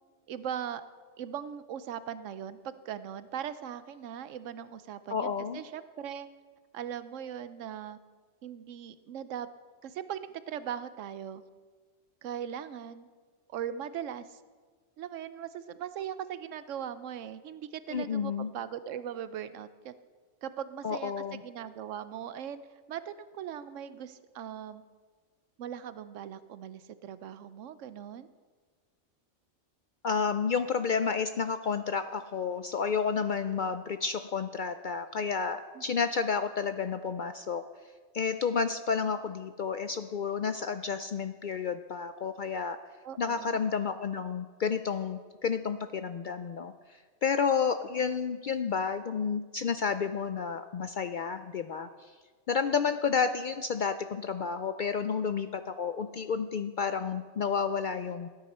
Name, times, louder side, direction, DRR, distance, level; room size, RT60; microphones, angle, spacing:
voice 1, 0.3-0.8 1.2-6.3 6.7-8.0 8.4-9.5 9.8-11.4 12.2-13.1 13.5-14.4 15.0-19.9 20.4-22.6 22.9-24.8 25.6-28.3 35.7-35.8 43.0-43.6, right 9 dB, 80° right, 13 dB, 1.0 m, -39 dB
voice 2, 5.1-5.6 17.9-18.5 20.8-21.4 30.0-37.6 38.1-42.8 43.2-52.1 52.5-58.3, left 6 dB, 60° left, 9 dB, 0.5 m, -31 dB
17.0 x 9.9 x 4.3 m, 1.5 s
omnidirectional pair, 1.3 m